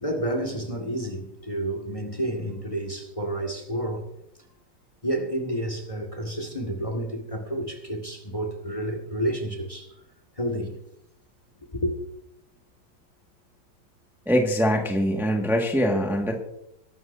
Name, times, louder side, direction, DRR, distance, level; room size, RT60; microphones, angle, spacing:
voice 1, 0.0-4.1 5.0-9.9 10.4-10.8 11.7-11.9, right 1 dB, 20° left, 1.9 m, -30 dB
voice 2, 14.2-16.3, equal, ahead, 1.6 m, -23 dB
22.5 x 12.5 x 2.7 m
omnidirectional pair, 2.1 m